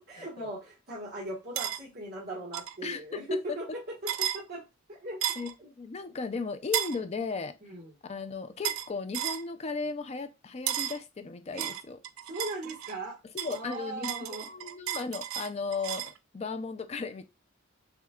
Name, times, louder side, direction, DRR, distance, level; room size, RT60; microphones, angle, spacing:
voice 1, 0.0-4.6 4.9-5.2 5.6-5.7 7.6-7.9 11.5-11.7 12.3-13.2 13.5-14.5, right 1 dB, 50° right, 1.4 m, -38 dB
sound 1, 1.6-1.8 2.5-2.8 4.1-4.4 5.2-5.5 6.7-7.0 8.6-8.9 9.1-9.4 10.7-11.0 11.6-13.0 13.4-16.2, right 11 dB, 80° right, 0.4 m, -33 dB
voice 2, 2.8-3.6 5.4-5.5 5.8-7.6 8.0-12.0 13.3-14.2 14.5-17.3, left 4 dB, 30° left, 0.4 m, -36 dB
6.3 x 2.3 x 2.3 m
head